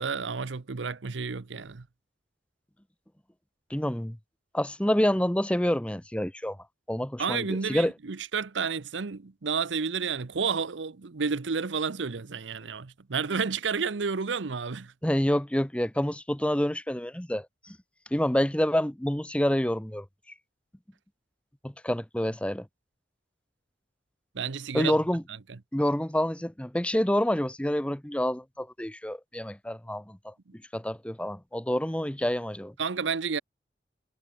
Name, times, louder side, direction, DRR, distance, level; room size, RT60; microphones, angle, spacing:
voice 1, 0.0-1.9 7.2-14.9 24.3-24.9 25.5-25.6 32.8-33.4, right 5 dB, 85° right, 0.8 m, -31 dB
voice 2, 3.7-4.2 4.5-6.6 6.9-7.9 15.0-17.8 18.1-20.0 21.6-22.7 24.7-25.2 25.7-30.3 30.7-32.7, equal, 5° left, 0.8 m, -27 dB
head